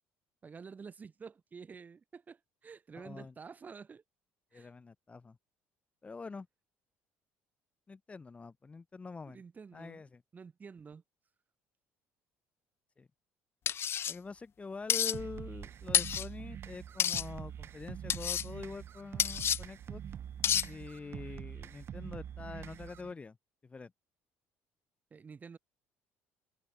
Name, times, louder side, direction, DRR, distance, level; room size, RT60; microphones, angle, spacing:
voice 1, 0.4-4.0 4.5-4.7 9.3-10.0 10.3-11.0 25.1-25.6, right 5 dB, 30° right, 8.0 m, -49 dB
voice 2, 3.0-3.3 4.5-5.4 6.0-6.5 7.9-9.4 9.7-10.2 13.0-13.1 14.1-20.0 20.6-23.4 23.6-23.9, left 4 dB, 25° left, 3.8 m, -45 dB
sound 1, 13.7-14.1 14.9-15.1 15.9-16.3 17.0-17.2 18.1-18.4 19.2-19.6 20.4-20.7, left 9 dB, 50° left, 1.4 m, -29 dB
sound 2, 15.1-23.1, right 9 dB, 50° right, 3.2 m, -45 dB
supercardioid pair, 95°, 5 cm